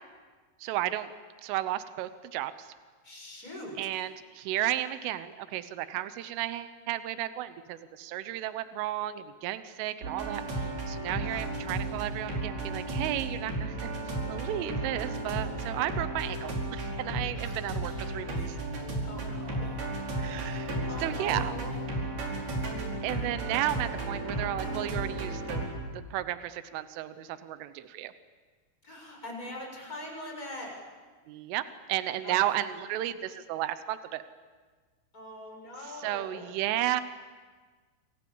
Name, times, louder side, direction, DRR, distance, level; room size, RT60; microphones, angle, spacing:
voice 1, 0.6-1.1 1.4-2.7 3.8-13.9 14.3-18.6 20.2-21.5 23.0-25.7 25.9-28.1 31.3-31.6 31.9-34.2 35.8-37.0, right 13 dB, 85° right, 12 dB, 3.5 m, -33 dB
voice 2, 3.0-3.8 11.2-11.5 17.3-17.5 17.8-18.0 18.3-18.6 19.0-19.8 20.4-21.7 28.8-30.7 32.2-32.4 35.1-36.5, left 1 dB, 15° left, 0 dB, 6.8 m, -43 dB
sound 1, 10.0-25.7, right 2 dB, 50° right, 6.6 m, -34 dB
27.5 x 27.5 x 7.1 m, 1.4 s
omnidirectional pair, 5.6 m